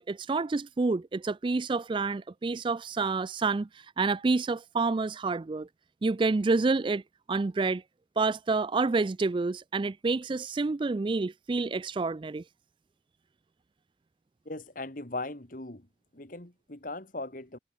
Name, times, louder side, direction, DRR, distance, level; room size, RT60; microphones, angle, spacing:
voice 1, 0.0-3.7 4.0-5.7 6.0-7.0 7.3-7.8 8.2-12.4, right 3 dB, 25° right, 0.3 m, -28 dB
voice 2, 14.5-15.9 16.1-17.6, left 2 dB, 45° left, 2.2 m, -39 dB
head